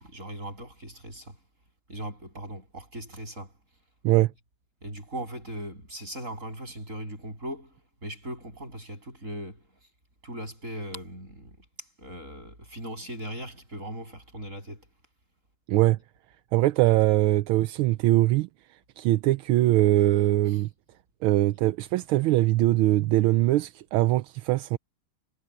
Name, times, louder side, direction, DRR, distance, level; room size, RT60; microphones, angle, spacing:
voice 1, 0.0-1.4 1.9-3.5 4.8-7.7 8.0-9.6 10.2-14.8, right 1 dB, 35° right, 8.6 m, -39 dB
voice 2, 15.7-16.0 16.5-20.7 21.2-24.8, right 16 dB, 80° right, 1.5 m, -22 dB
omnidirectional pair, 2.3 m